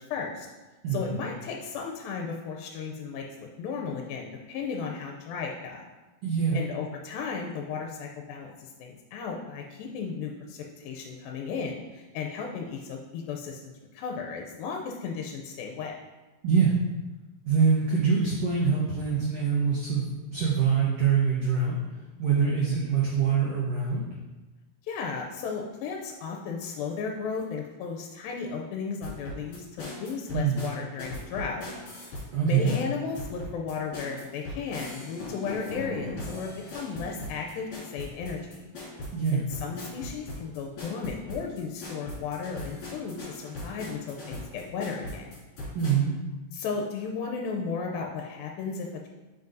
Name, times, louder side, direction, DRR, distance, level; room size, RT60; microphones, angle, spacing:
voice 1, 0.1-0.5 0.9-5.9 6.5-16.0 24.8-31.7 32.4-38.6 39.3-45.3 46.5-49.1, left 5 dB, 85° left, 1 dB, 2.3 m, -35 dB
voice 2, 0.8-1.2 6.2-6.6 16.4-16.7 17.4-21.8 22.2-24.2 30.3-30.6 32.3-32.7 39.1-39.4 45.7-46.2, right 6 dB, 90° right, -4 dB, 1.3 m, -24 dB
sound 1, 29.0-32.3 32.6-45.9, left 1 dB, 55° left, 3.4 m, -39 dB
8.0 x 5.3 x 2.6 m, 1.1 s
omnidirectional pair, 4.1 m